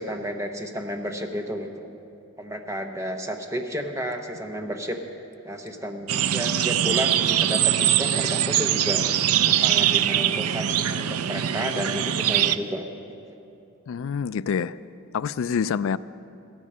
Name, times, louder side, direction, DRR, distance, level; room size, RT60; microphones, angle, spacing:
voice 1, 0.0-1.9 2.4-5.0 5.4-9.0 9.4-12.9, equal, 15° right, 4 dB, 0.8 m, -32 dB
sound 1, 6.1-12.6, right 10 dB, 80° right, 0.4 m, -22 dB
voice 2, 13.9-14.8 15.1-16.0, left 6 dB, 60° left, 15 dB, 0.3 m, -26 dB
15.5 x 13.5 x 5.5 m, 2.7 s
head